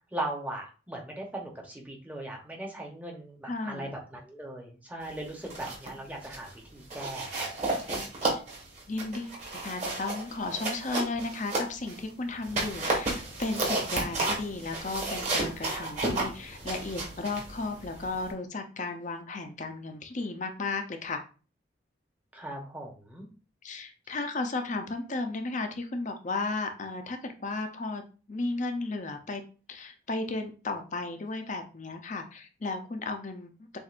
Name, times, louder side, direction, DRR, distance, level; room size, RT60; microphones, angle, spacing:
voice 1, 0.1-7.5 22.3-23.3, right 1 dB, 10° right, 0 dB, 0.9 m, -39 dB
voice 2, 3.4-3.9 8.2-8.4 8.9-21.2 23.6-29.4 29.7-33.8, left 3 dB, 35° left, 5 dB, 0.6 m, -34 dB
sound 1, 5.3-5.9 6.2-6.5 6.9-12.0 12.4-18.3, right 2 dB, 35° right, 1.4 m, -32 dB
7.1 x 2.5 x 2.5 m, 0.36 s
head